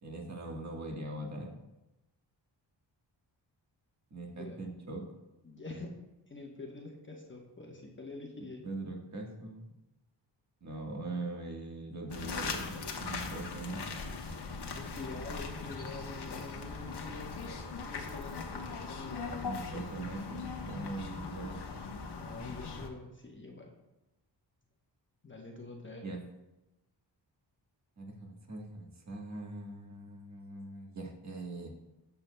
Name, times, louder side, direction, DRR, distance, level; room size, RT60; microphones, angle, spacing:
voice 1, 0.0-1.5 4.1-5.0 8.6-9.6 10.6-13.8 19.4-21.6 26.0-26.2 28.0-31.7, right 2 dB, 35° right, 0 dB, 1.5 m, -41 dB
voice 2, 5.4-5.9 6.3-8.6 14.8-17.6 17.9-19.7 22.1-23.7 25.2-26.0, left 3 dB, 25° left, 0 dB, 1.1 m, -46 dB
sound 1, 12.1-22.9, left 4 dB, 60° left, 1.0 m, -40 dB
12.5 x 6.9 x 2.2 m, 0.97 s
wide cardioid pair, 95°, 45 cm